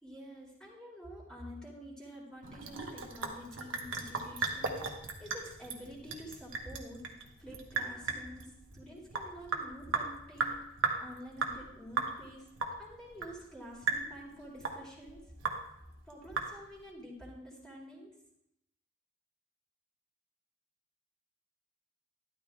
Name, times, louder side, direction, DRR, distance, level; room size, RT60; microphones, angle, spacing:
voice 1, 0.0-7.0 7.4-10.6 11.0-12.4 12.8-15.2 16.1-18.1, equal, 5° left, -4 dB, 2.8 m, -48 dB
Sink (filling or washing) / Drip, 2.4-16.9, right 4 dB, 90° right, 1.3 m, -37 dB
12.5 x 12.0 x 2.4 m, 0.78 s
head